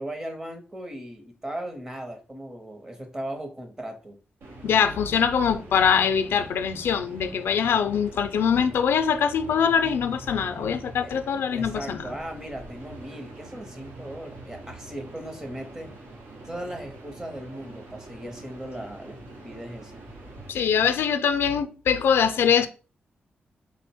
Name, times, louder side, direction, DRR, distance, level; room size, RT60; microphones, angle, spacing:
voice 1, 0.0-4.2 8.5-8.8 9.8-9.9 11.0-11.1 11.5-15.9 16.4-20.1, right 1 dB, 15° right, 0.6 m, -38 dB
sound 1, 4.4-20.5, right 2 dB, 90° right, 0.9 m, -44 dB
voice 2, 4.6-12.0 20.5-22.7, left 7 dB, 85° left, 0.4 m, -23 dB
3.6 x 2.0 x 4.3 m
wide cardioid pair, 165°, 4 cm